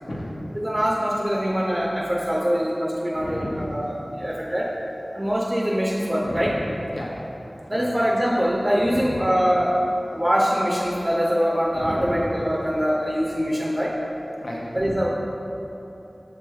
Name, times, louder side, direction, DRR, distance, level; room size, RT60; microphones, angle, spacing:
voice 1, 0.0-0.4 3.1-3.7 6.2-7.1 7.7-7.9 8.8-9.2 11.7-12.2 14.4-15.0, left 1 dB, 65° left, -5 dB, 0.6 m, -33 dB
voice 2, 0.5-4.7 5.1-6.5 7.7-9.8 10.1-13.9 14.7-15.1, equal, 25° right, -4 dB, 0.5 m, -23 dB
7.1 x 3.0 x 2.3 m, 3.0 s
wide cardioid pair, 55°, 0 cm